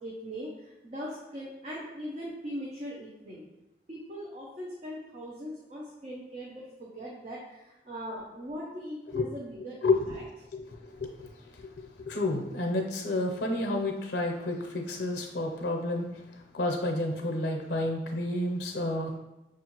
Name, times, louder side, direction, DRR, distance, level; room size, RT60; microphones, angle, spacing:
voice 1, 0.0-3.4 3.9-10.0, equal, 35° right, -4 dB, 0.5 m, -40 dB
voice 2, 9.8-10.1 10.5-11.7 12.1-19.1, left 2 dB, 85° left, 1 dB, 0.6 m, -30 dB
6.2 x 2.4 x 2.9 m, 0.96 s
head